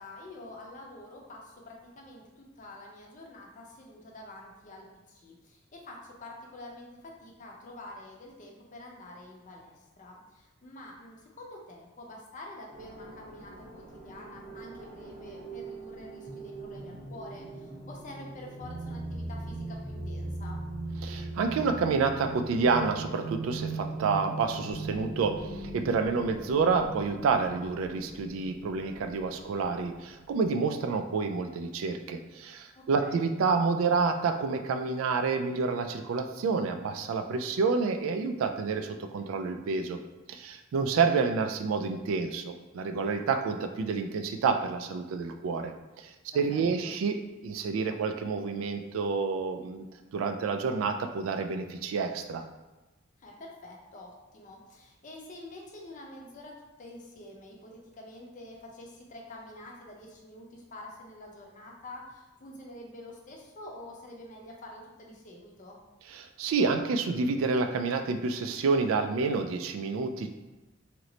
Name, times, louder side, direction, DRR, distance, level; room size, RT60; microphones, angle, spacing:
voice 1, 0.0-20.6 32.7-33.3 46.3-46.9 53.2-65.8, left 1 dB, 40° left, -1 dB, 0.6 m, -47 dB
sound 1, 12.7-29.9, right 2 dB, 30° right, 0.8 m, -40 dB
voice 2, 21.0-40.0 40.3-49.9 50.1-52.4 66.1-70.3, right 4 dB, 85° right, 7 dB, 0.3 m, -29 dB
2.9 x 2.0 x 3.8 m, 1.1 s
head